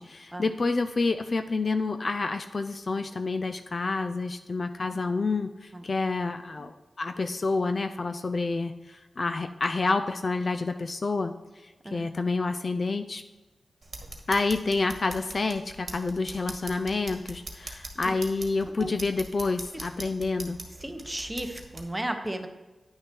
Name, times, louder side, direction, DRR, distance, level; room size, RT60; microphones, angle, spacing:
voice 1, 0.0-11.3 11.6-13.2 14.3-20.6, left 3 dB, 45° left, 8 dB, 0.4 m, -28 dB
sound 1, 13.8-21.8, right 2 dB, 40° right, 1.5 m, -42 dB
voice 2, 20.8-22.5, right 1 dB, 10° right, 6 dB, 0.9 m, -34 dB
9.9 x 6.4 x 4.5 m, 1.2 s
wide cardioid pair, 125°, 0 cm